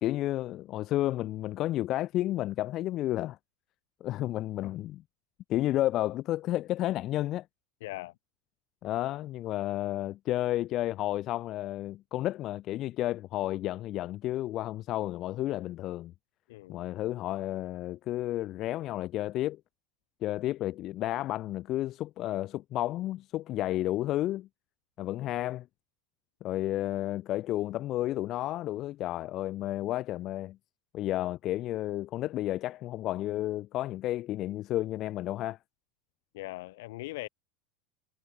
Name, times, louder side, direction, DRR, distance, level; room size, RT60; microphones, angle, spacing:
voice 1, 0.0-3.4 4.0-5.0 5.5-7.5 8.8-16.1 16.7-19.6 20.2-24.5 25.0-25.7 26.4-30.6 30.9-35.6, left 14 dB, 45° left, 1.6 m, -31 dB
voice 2, 7.8-8.2 16.5-16.8 36.3-37.3, left 20 dB, 70° left, 3.6 m, -40 dB
hypercardioid pair, 90°, 0 cm